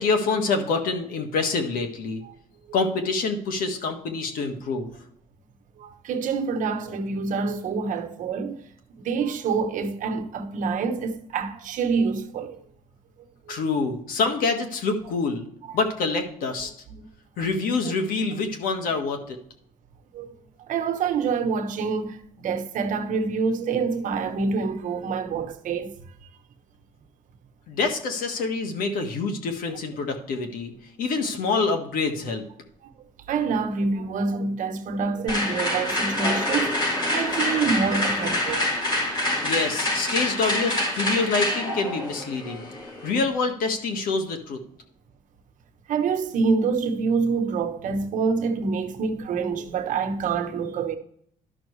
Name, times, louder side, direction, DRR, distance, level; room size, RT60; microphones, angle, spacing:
voice 1, 0.0-2.2 2.7-4.9 13.5-15.5 15.7-16.7 17.4-19.4 27.7-30.7 31.0-32.4 39.4-42.7 43.0-44.6, left 4 dB, 80° left, 1.6 m, -26 dB
voice 2, 5.8-8.6 9.0-12.6 13.5-13.6 16.9-17.1 20.1-20.3 20.7-25.9 33.3-38.7 45.9-51.0, right 5 dB, 65° right, 1.1 m, -26 dB
sound 1, 35.3-43.2, left 1 dB, 30° left, 4.1 m, -26 dB
11.5 x 6.2 x 3.2 m
cardioid pair, 120°, 15 cm